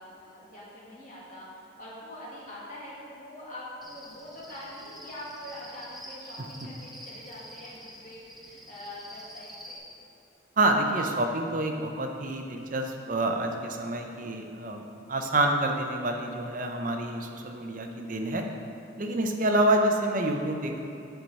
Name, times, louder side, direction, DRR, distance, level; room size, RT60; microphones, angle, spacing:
voice 1, 0.0-9.8, left 1 dB, 40° left, -7 dB, 1.8 m, -44 dB
Cricket, 3.8-9.8, equal, ahead, 0.6 m, -47 dB
voice 2, 10.6-14.8 15.1-18.4 19.0-20.8, right 1 dB, 40° right, 3 dB, 0.6 m, -27 dB
9.4 x 4.7 x 4.0 m, 2.5 s
head